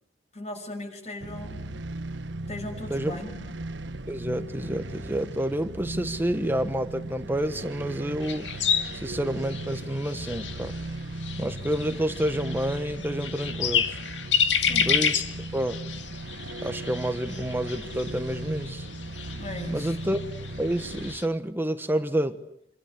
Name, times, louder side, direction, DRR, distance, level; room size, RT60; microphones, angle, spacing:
voice 1, 0.3-1.8 2.5-3.5 14.6-14.9 19.3-20.0, left 1 dB, 40° left, 6 dB, 6.2 m, -38 dB
sound 1, 1.2-21.1, right 2 dB, 90° right, 1.3 m, -37 dB
voice 2, 4.1-8.5 8.9-10.8 11.4-14.0 14.8-15.2 15.5-15.8 16.6-18.9 19.7-20.2 20.6-22.4, right 1 dB, 10° right, 9 dB, 1.1 m, -29 dB
sound 2, 8.2-21.3, left 7 dB, 90° left, 2.0 m, -30 dB
28.0 x 25.0 x 8.4 m, 0.72 s
head